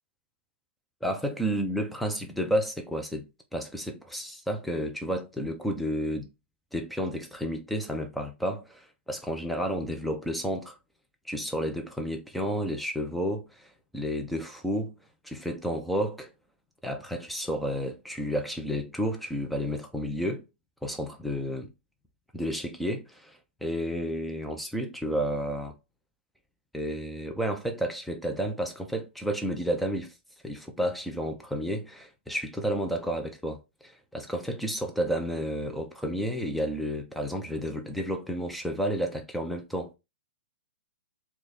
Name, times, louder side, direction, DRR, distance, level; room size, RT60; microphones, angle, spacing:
voice 1, 1.0-6.3 6.7-10.8 11.3-14.9 15.2-16.3 16.8-20.4 20.8-21.7 22.3-25.7 26.7-30.1 30.4-40.0, equal, ahead, 0.4 m, -31 dB
3.1 x 2.3 x 4.0 m
hypercardioid pair, 155°, 7 cm